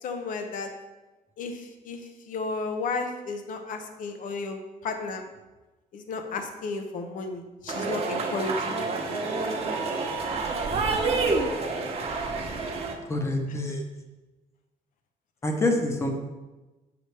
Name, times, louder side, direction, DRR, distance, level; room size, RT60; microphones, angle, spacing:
voice 1, 0.0-0.7 1.4-5.2 5.9-9.3, left 3 dB, 65° left, 6 dB, 0.7 m, -33 dB
sound 1, 7.7-12.9, right 3 dB, 45° right, 0.9 m, -28 dB
voice 2, 13.0-13.8 15.4-16.1, left 2 dB, 20° left, 3 dB, 0.8 m, -26 dB
6.8 x 5.4 x 3.3 m, 1.1 s
cardioid pair, 145°, 15 cm